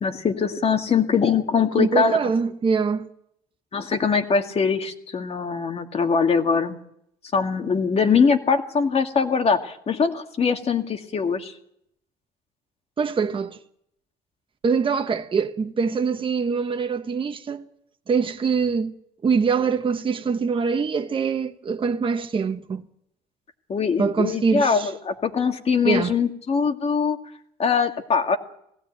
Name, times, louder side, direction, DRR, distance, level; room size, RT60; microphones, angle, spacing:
voice 1, 0.0-2.2 3.7-6.8 7.3-11.5 23.7-27.2 27.6-28.4, left 5 dB, 35° left, 2.2 m, -22 dB
voice 2, 1.8-3.1 13.0-13.6 14.6-17.7 18.1-18.9 19.2-22.8 24.0-24.9 25.8-26.1, right 5 dB, 30° right, 1.2 m, -23 dB
19.5 x 16.0 x 9.0 m
cardioid pair, 110°, 17 cm